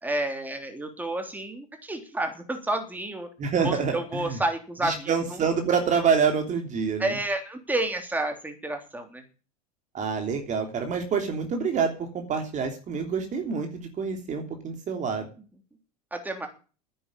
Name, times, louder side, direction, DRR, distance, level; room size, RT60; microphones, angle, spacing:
voice 1, 0.0-3.3 3.6-5.4 7.0-9.2 16.1-16.5, right 2 dB, 10° right, 5 dB, 3.4 m, -30 dB
voice 2, 3.4-4.4 4.8-7.1 9.9-15.3, right 6 dB, 35° right, 5 dB, 3.2 m, -27 dB
10.5 x 8.8 x 10.0 m, 0.37 s
hypercardioid pair, 95°, 20 cm